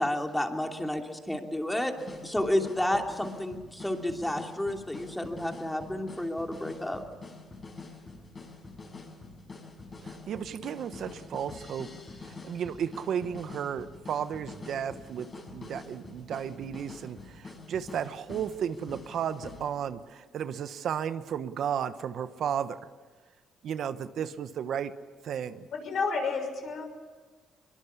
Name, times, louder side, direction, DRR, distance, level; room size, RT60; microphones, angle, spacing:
voice 1, 0.0-1.9 2.2-7.0, left 1 dB, 5° left, 3 dB, 3.0 m, -31 dB
sound 1, 2.0-19.9, left 3 dB, 35° left, 6.4 m, -46 dB
voice 2, 10.3-11.9 12.4-15.3 15.5-17.2 17.7-22.8 23.6-24.9 25.2-25.6, right 8 dB, 70° right, 11 dB, 1.1 m, -33 dB
voice 3, 25.7-26.9, left 4 dB, 65° left, 4 dB, 6.5 m, -30 dB
23.0 x 22.5 x 8.4 m, 1.4 s
cardioid pair, 90°, 0 cm